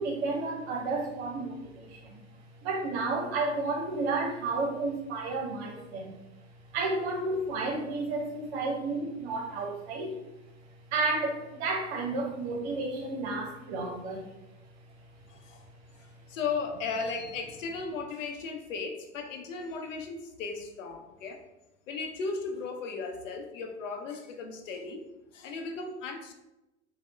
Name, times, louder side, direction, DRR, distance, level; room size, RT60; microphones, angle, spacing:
voice 1, 0.0-2.3 2.6-6.2 6.7-10.2 10.9-14.3, right 3 dB, 60° right, 0 dB, 0.6 m, -32 dB
voice 2, 15.3-15.7 16.0-21.4 21.9-25.0 25.3-26.3, left 4 dB, 80° left, 5 dB, 0.6 m, -36 dB
3.1 x 2.1 x 3.0 m, 0.95 s
hypercardioid pair, 90°, 38 cm